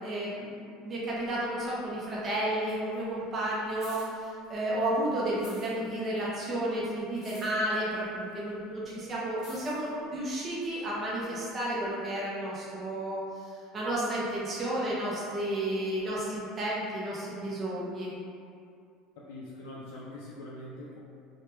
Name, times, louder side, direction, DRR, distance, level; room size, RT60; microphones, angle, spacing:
voice 1, 0.0-13.2 13.7-18.2, right 1 dB, 25° right, -7 dB, 0.4 m, -32 dB
sound 1, 1.2-2.2 2.4-4.9 5.2-11.2 11.9-12.0, left 2 dB, 30° left, 0.8 m, -54 dB
voice 2, 19.2-21.0, left 1 dB, 75° left, -5 dB, 0.3 m, -43 dB
2.2 x 2.0 x 3.0 m, 2.4 s
cardioid pair, 165°, 0 cm